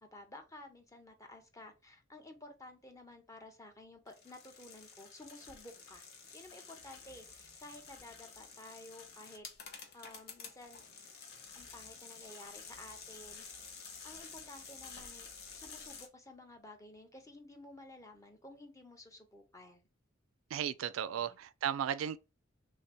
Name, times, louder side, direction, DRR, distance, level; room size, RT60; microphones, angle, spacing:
voice 1, 0.0-6.1 6.3-9.5 9.9-10.8 11.5-13.5 14.0-15.3 15.6-19.9 21.1-21.4, left 2 dB, 15° left, 0.6 m, -53 dB
sound 1, 4.1-16.1, left 5 dB, 55° left, 0.8 m, -51 dB
voice 2, 20.5-22.2, right 9 dB, 80° right, 0.3 m, -35 dB
3.3 x 2.8 x 3.3 m
head